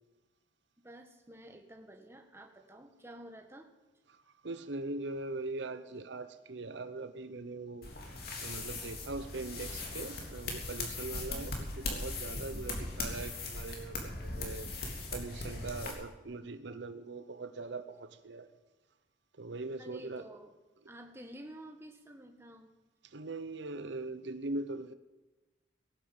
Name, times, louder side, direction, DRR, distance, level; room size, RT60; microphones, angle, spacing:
voice 1, 0.8-3.7 11.3-11.5 19.8-20.5 20.9-22.7, right 1 dB, 15° right, 4 dB, 1.6 m, -51 dB
voice 2, 4.4-7.9 8.4-11.5 11.8-14.7 15.1-18.5 19.4-20.3 23.0-24.9, right 2 dB, 70° right, 10 dB, 0.9 m, -41 dB
sound 1, 7.8-15.9, left 2 dB, 55° left, 3.4 m, -39 dB
18.0 x 10.0 x 7.2 m, 1.1 s
head